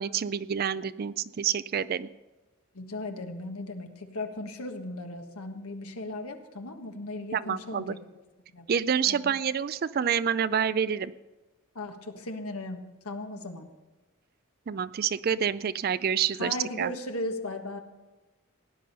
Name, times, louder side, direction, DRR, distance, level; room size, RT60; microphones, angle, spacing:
voice 1, 0.0-2.1 7.3-7.9 8.7-11.1 14.7-16.9, right 7 dB, 45° right, 16 dB, 0.3 m, -28 dB
voice 2, 2.7-8.0 8.5-8.7 9.0-9.4 11.7-13.7 16.4-17.8, left 2 dB, 85° left, 5 dB, 1.5 m, -37 dB
17.5 x 10.0 x 5.4 m, 1.1 s
head